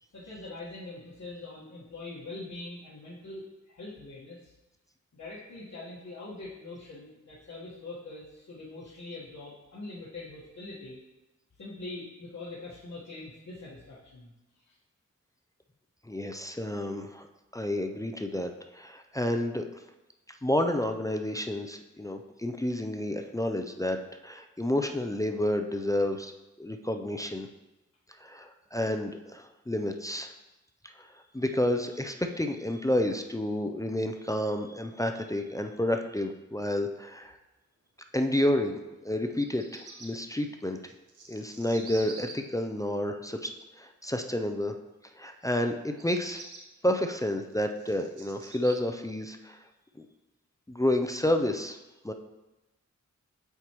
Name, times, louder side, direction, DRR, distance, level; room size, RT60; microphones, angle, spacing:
voice 1, 0.1-4.5 5.1-11.0 11.6-14.3 14.7-14.8, left 2 dB, 70° left, -9 dB, 1.4 m, -43 dB
voice 2, 16.0-17.3 17.5-19.7 20.3-26.3 26.6-27.5 28.2-30.3 30.8-37.4 38.1-40.8 41.3-43.5 43.8-44.8 45.2-46.4 46.8-49.6 50.0-50.1 50.7-51.8 52.0-52.1, left 1 dB, 10° left, 4 dB, 0.4 m, -30 dB
Bird vocalization bird call bird song, 39.2-40.1 40.8-42.3 45.9-46.6 47.3-48.7, right 4 dB, 85° right, 1.0 m, -46 dB
7.9 x 4.6 x 3.0 m, 1.0 s
wide cardioid pair, 85°, 30 cm